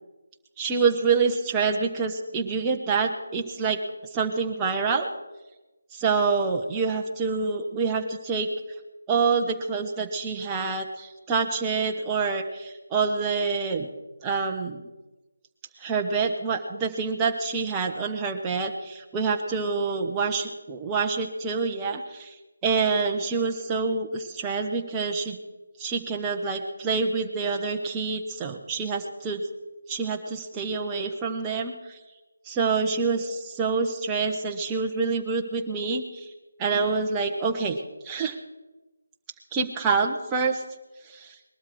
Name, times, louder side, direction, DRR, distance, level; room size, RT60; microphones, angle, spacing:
voice 1, 0.6-3.8 4.1-5.1 5.9-8.5 9.1-13.9 14.2-14.8 15.8-22.3 22.6-25.4 25.8-29.4 29.9-32.0 32.5-36.3 36.6-38.4 39.5-40.6 41.1-41.3, right 4 dB, 15° right, 2 dB, 1.2 m, -27 dB
20.5 x 12.5 x 4.8 m, 1.1 s
figure-of-eight pair, 160°, 0 cm